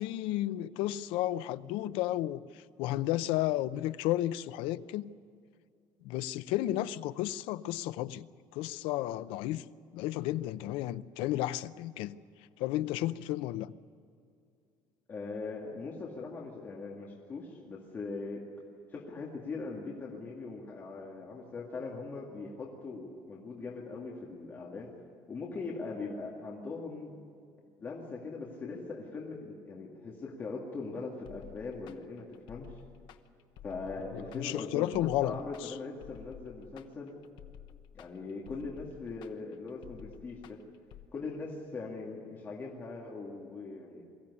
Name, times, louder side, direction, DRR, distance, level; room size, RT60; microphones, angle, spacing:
voice 1, 0.0-2.5 2.8-5.1 6.0-9.6 9.9-12.2 12.6-13.7 34.1-35.7, left 14 dB, 80° left, 0.6 m, -33 dB
voice 2, 15.1-18.5 18.9-24.9 25.3-27.2 27.8-32.7 33.6-37.1 37.9-40.6 41.1-44.0, left 3 dB, 25° left, 2.2 m, -41 dB
sound 1, 31.3-41.1, left 10 dB, 60° left, 1.1 m, -52 dB
22.5 x 15.5 x 9.7 m
cardioid pair, 175°, 9 cm